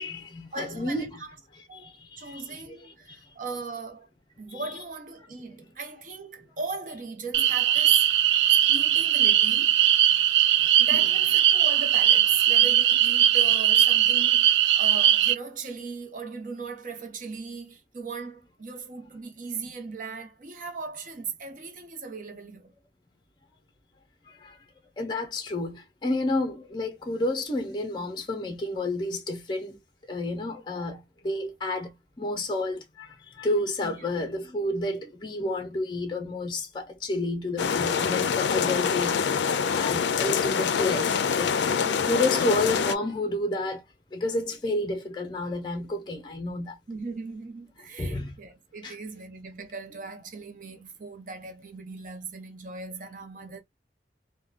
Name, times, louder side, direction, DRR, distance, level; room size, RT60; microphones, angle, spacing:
voice 1, 0.0-1.2 1.7-3.3 4.5-4.6 10.6-11.1 24.3-24.6 25.0-29.8 30.1-39.2 39.7-41.6 42.0-43.8 44.1-46.8 48.0-48.3 48.8-49.0, left 2 dB, 25° left, 0.5 m, -30 dB
voice 2, 0.5-1.4 1.7-4.1 4.4-8.1 8.7-9.8 10.8-22.7 33.8-33.9 41.8-42.5 46.9-53.6, right 4 dB, 45° right, 0.7 m, -38 dB
sound 1, 7.3-15.3, right 11 dB, 80° right, 0.3 m, -20 dB
sound 2, 37.6-43.0, left 6 dB, 80° left, 0.4 m, -25 dB
3.5 x 2.2 x 2.3 m
head